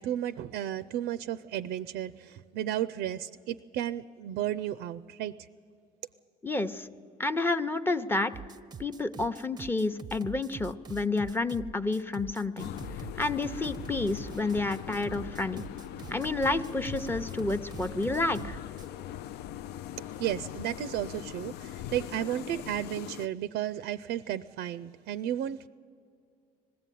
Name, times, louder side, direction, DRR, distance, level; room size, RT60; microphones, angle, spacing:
voice 1, 0.0-5.5 20.0-25.7, right 11 dB, 85° right, 0.4 m, -33 dB
voice 2, 6.4-6.9 7.2-8.3 8.8-12.7 13.2-15.6 16.1-18.6, left 2 dB, 10° left, 0.7 m, -30 dB
sound 1, 8.3-19.0, right 7 dB, 25° right, 0.5 m, -45 dB
sound 2, 12.6-23.3, left 12 dB, 75° left, 0.4 m, -41 dB
20.0 x 15.0 x 9.2 m
cardioid pair, 110°, 17 cm